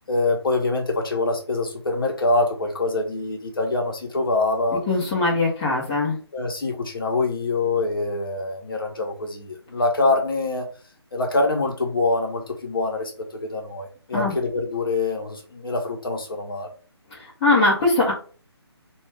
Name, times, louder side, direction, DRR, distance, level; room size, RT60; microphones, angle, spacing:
voice 1, 0.1-4.8 6.3-10.7 11.1-16.7, left 2 dB, 55° left, 2 dB, 0.8 m, -25 dB
voice 2, 4.9-6.2 14.1-14.3 17.4-18.1, left 2 dB, 15° left, -5 dB, 0.6 m, -20 dB
2.3 x 2.2 x 3.3 m, 0.39 s
figure-of-eight pair, 150°, 14 cm